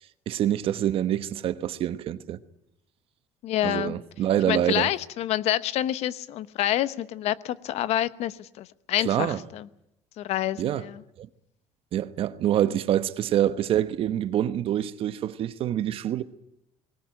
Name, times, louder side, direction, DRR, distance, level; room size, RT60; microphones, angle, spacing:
voice 1, 0.3-2.4 3.6-4.9 9.0-9.4 10.6-10.8 11.2-11.3 11.9-16.2, right 11 dB, 50° right, 1.1 m, -26 dB
voice 2, 3.4-4.0 4.5-9.7 10.2-11.0, left 13 dB, 60° left, 0.9 m, -28 dB
20.0 x 19.0 x 9.1 m
cardioid pair, 145°, 12 cm